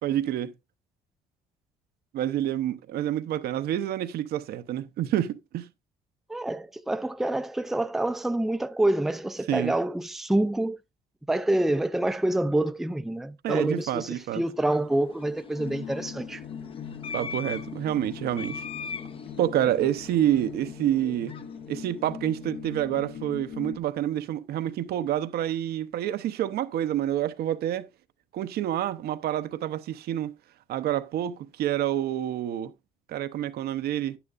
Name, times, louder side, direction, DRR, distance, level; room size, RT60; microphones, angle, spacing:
voice 1, 0.0-0.5 2.1-5.7 9.5-9.7 13.4-14.4 17.1-18.6 19.4-21.3 21.7-27.9 28.3-30.4 30.7-32.7 33.1-34.2, right 11 dB, 70° right, 0.8 m, -28 dB
voice 2, 6.3-10.8 11.3-16.4, right 1 dB, ahead, 0.5 m, -27 dB
sound 1, 14.3-22.8, left 5 dB, 35° left, 0.7 m, -42 dB
sound 2, 15.6-23.8, left 7 dB, 75° left, 1.9 m, -41 dB
10.0 x 10.0 x 2.5 m
cardioid pair, 110°, 17 cm